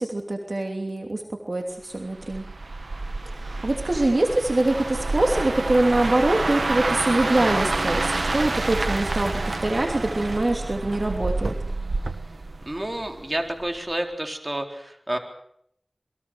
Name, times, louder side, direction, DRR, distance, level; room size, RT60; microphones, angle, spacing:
voice 1, 0.0-2.4 3.3-11.5, right 2 dB, 65° right, 3 dB, 2.9 m, -24 dB
sound 1, 2.2-13.3 13.6-13.9, right 2 dB, 85° right, 1.7 m, -28 dB
voice 2, 12.7-15.2, right 1 dB, 35° right, 3 dB, 4.1 m, -29 dB
28.5 x 22.0 x 6.4 m, 0.71 s
wide cardioid pair, 45°, 0 cm